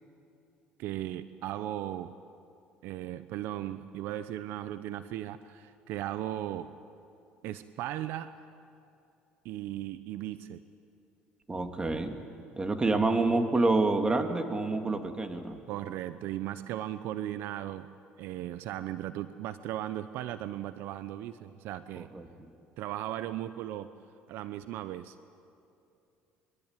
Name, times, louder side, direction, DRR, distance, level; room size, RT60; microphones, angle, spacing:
voice 1, 0.8-2.2 2.8-6.8 7.4-8.5 9.4-10.6 15.7-17.9 18.2-22.1 22.8-23.9 24.3-25.2, right 13 dB, 70° right, 13 dB, 0.7 m, -37 dB
voice 2, 11.5-12.2 12.6-15.6 22.1-22.3, right 3 dB, 20° right, 6 dB, 2.5 m, -27 dB
23.5 x 23.5 x 9.1 m, 2.7 s
supercardioid pair, 80°, 4 cm